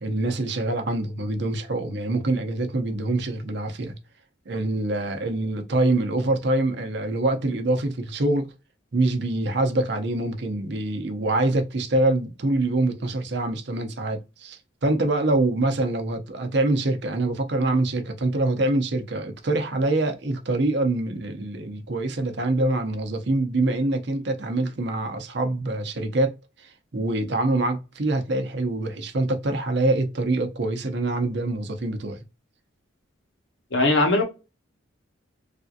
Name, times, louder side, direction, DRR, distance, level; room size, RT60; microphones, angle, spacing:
voice 1, 0.0-3.9 4.5-8.5 8.9-32.2, right 2 dB, 55° right, 0.6 m, -25 dB
voice 2, 33.7-34.2, left 2 dB, 65° left, 1.1 m, -19 dB
3.3 x 2.7 x 2.4 m
head